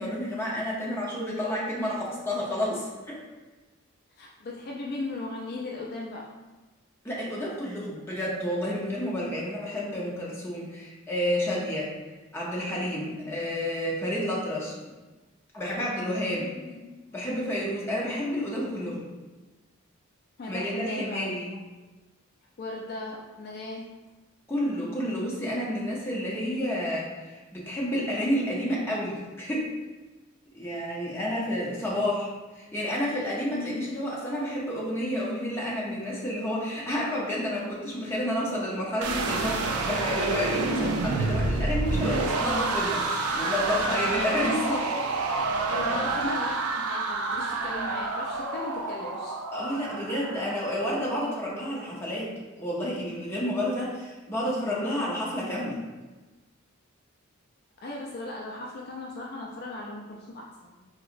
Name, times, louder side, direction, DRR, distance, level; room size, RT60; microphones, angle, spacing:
voice 1, 0.0-3.2 7.0-11.9 12.3-14.8 15.5-16.5 17.1-19.1 20.5-21.5 24.5-29.7 30.5-45.0 45.7-46.0 49.5-55.8, equal, 10° left, -5 dB, 0.7 m, -30 dB
voice 2, 4.1-6.3 16.6-17.1 20.4-21.4 22.6-24.0 33.5-33.9 45.7-49.4 57.8-60.9, left 2 dB, 45° left, -2 dB, 0.3 m, -37 dB
sound 1, 39.0-51.1, right 3 dB, 85° right, 0.4 m, -28 dB
3.9 x 2.8 x 2.5 m, 1.2 s
head